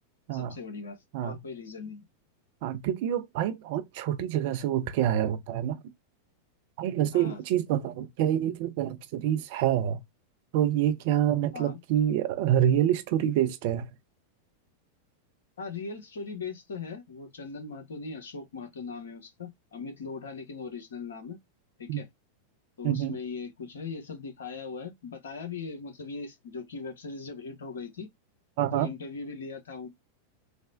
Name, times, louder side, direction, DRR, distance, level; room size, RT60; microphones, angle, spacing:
voice 1, 0.3-2.0 7.1-7.4 11.5-11.8 15.6-21.4 21.8-22.1 22.8-28.1 28.7-29.9, left 4 dB, 65° left, 0.8 m, -39 dB
voice 2, 2.6-5.8 6.8-10.0 10.5-13.9 21.9-22.0 22.8-23.2 28.6-28.9, right 11 dB, 50° right, 0.4 m, -27 dB
3.3 x 2.0 x 2.4 m
figure-of-eight pair, 90°, 0 cm